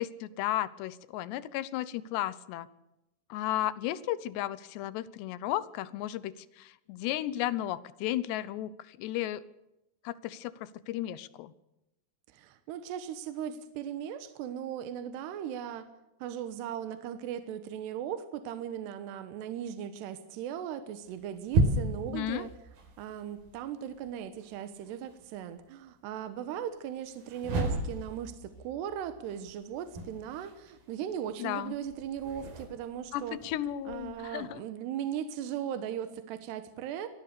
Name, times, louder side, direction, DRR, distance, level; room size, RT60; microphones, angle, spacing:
voice 1, 0.0-2.7 3.3-9.4 10.0-11.5 22.1-22.5 31.4-31.7 33.1-34.6, left 13 dB, 85° left, 17 dB, 3.1 m, -34 dB
voice 2, 12.3-15.9 16.2-22.5 23.0-33.4 33.8-37.1, right 9 dB, 80° right, 10 dB, 3.3 m, -38 dB
sound 1, 21.0-25.3 27.0-34.5, right 2 dB, 60° right, 5.7 m, -35 dB
24.0 x 18.5 x 6.8 m, 0.92 s
omnidirectional pair, 4.8 m